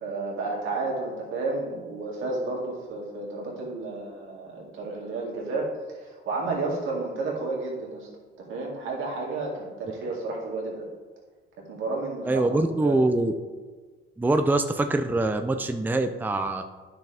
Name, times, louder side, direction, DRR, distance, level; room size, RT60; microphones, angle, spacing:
voice 1, 0.0-8.1 8.4-10.9 11.6-12.4 12.8-13.0, right 3 dB, 85° right, -2 dB, 2.2 m, -31 dB
voice 2, 12.2-13.3 14.2-16.6, right 2 dB, 10° right, 7 dB, 0.5 m, -24 dB
10.0 x 6.0 x 3.5 m, 1.4 s
cardioid pair, 90°, 20 cm